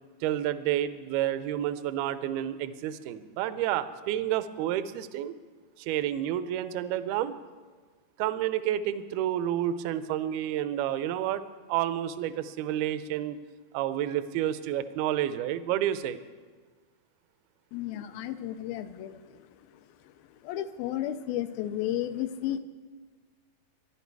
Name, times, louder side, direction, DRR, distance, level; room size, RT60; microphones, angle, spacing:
voice 1, 0.2-5.3 5.8-7.3 8.2-11.4 11.7-13.4 13.7-16.2, right 11 dB, 80° right, 13 dB, 2.5 m, -30 dB
voice 2, 17.7-19.4 20.4-22.6, left 12 dB, 80° left, 10 dB, 2.3 m, -33 dB
24.5 x 11.5 x 4.6 m, 1.5 s
omnidirectional pair, 4.5 m